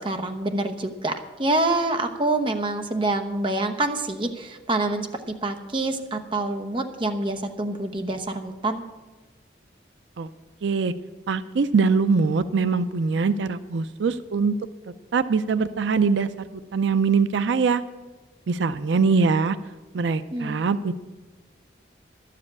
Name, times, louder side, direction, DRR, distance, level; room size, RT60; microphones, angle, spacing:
voice 1, 0.0-8.8 20.3-20.6, right 2 dB, 25° right, 6 dB, 0.9 m, -26 dB
voice 2, 10.6-10.9 11.3-14.5 15.1-16.3 16.7-17.8 18.5-19.6 19.9-20.9, right 4 dB, 85° right, 13 dB, 0.4 m, -22 dB
12.0 x 7.6 x 8.6 m, 1.2 s
head